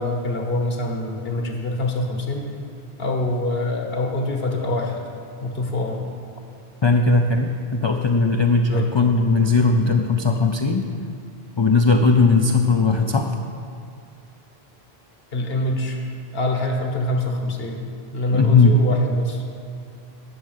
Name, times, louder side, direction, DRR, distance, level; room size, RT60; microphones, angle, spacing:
voice 1, 0.0-2.5 3.0-5.0 5.4-6.0 8.7-8.9 15.3-16.0 16.3-17.8 18.1-19.4, left 1 dB, 70° left, 2 dB, 1.5 m, -25 dB
voice 2, 6.8-10.9 11.6-13.3 18.4-18.7, left 3 dB, 40° left, 3 dB, 0.4 m, -18 dB
11.0 x 6.4 x 6.5 m, 2.5 s
omnidirectional pair, 1.1 m